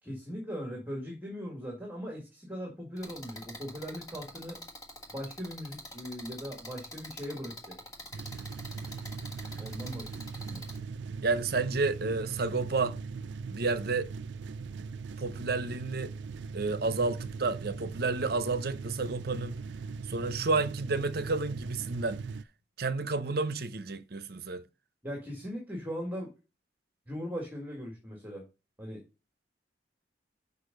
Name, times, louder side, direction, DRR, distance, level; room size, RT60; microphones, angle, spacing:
voice 1, 0.0-4.6 5.1-7.7 9.6-10.1 10.4-10.6 25.0-26.3 27.1-28.4 28.8-29.0, equal, 10° right, 2.0 m, -39 dB
sound 1, 3.0-10.8, equal, 20° left, 1.5 m, -46 dB
sound 2, 8.1-22.4, right 5 dB, 80° right, 0.4 m, -40 dB
voice 2, 11.2-13.0 13.5-14.1 15.2-16.1 16.5-19.6 20.1-22.2 22.8-24.6, right 3 dB, 60° right, 0.8 m, -30 dB
6.5 x 5.4 x 5.2 m
head